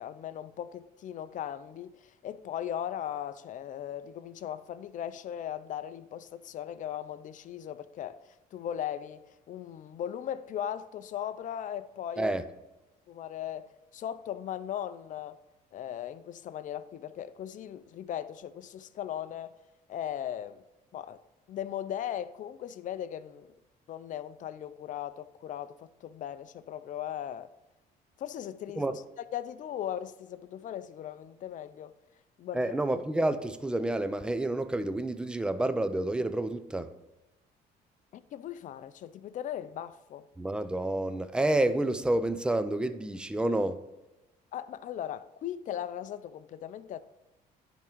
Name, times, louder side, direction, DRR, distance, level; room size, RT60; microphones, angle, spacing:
voice 1, 0.0-12.3 13.1-15.4 15.7-19.5 19.9-20.6 20.9-21.2 21.5-23.5 23.9-27.5 28.2-29.0 29.3-31.9 32.4-32.7 38.1-40.3 44.5-47.0, left 10 dB, 50° left, 0.5 m, -38 dB
voice 2, 32.5-36.9 40.4-43.8, right 1 dB, 5° right, 0.4 m, -29 dB
10.5 x 3.7 x 4.5 m
cardioid pair, 110°, 17 cm